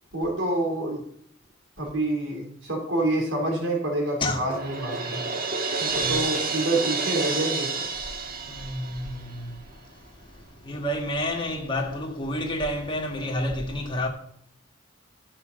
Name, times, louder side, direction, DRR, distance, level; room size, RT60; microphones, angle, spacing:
voice 1, 0.1-1.0 1.8-5.3 5.8-7.8, right 2 dB, 85° right, 2.9 m, -27 dB
Crash cymbal, 4.5-9.4, right 4 dB, 45° right, 1.4 m, -29 dB
voice 2, 8.5-9.0 10.7-14.1, left 1 dB, 25° left, 1.6 m, -29 dB
12.0 x 5.6 x 6.4 m
head